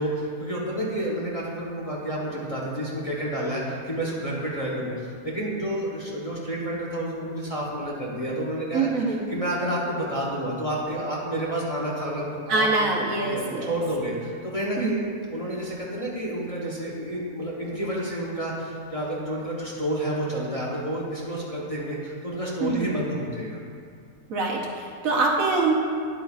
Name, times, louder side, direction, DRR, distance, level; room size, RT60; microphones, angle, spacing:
voice 1, 0.0-8.9 9.3-12.9 13.3-15.0 15.3-23.6, right 1 dB, 25° left, -4 dB, 0.9 m, -30 dB
voice 2, 8.7-9.2 12.5-13.7 14.8-15.1 22.6-22.9 24.3-25.7, right 3 dB, 65° right, -1 dB, 1.3 m, -24 dB
10.5 x 8.1 x 2.4 m, 2.2 s
omnidirectional pair, 1.6 m